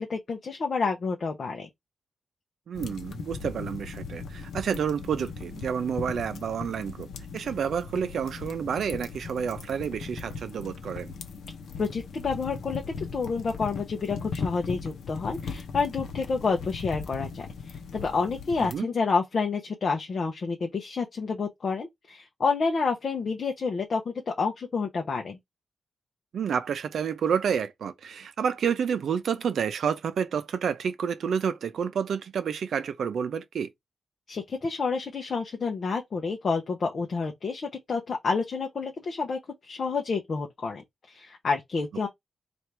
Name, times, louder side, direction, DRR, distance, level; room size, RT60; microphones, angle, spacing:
voice 1, 0.0-1.7 11.8-25.4 34.3-42.1, left 4 dB, 45° left, 0.7 m, -29 dB
voice 2, 2.7-7.1 7.3-11.1 18.6-18.9 26.3-33.7, right 7 dB, 75° right, 0.5 m, -29 dB
sound 1, 2.8-18.8, left 5 dB, 80° left, 0.8 m, -38 dB
4.4 x 2.5 x 3.3 m
wide cardioid pair, 160°, 0 cm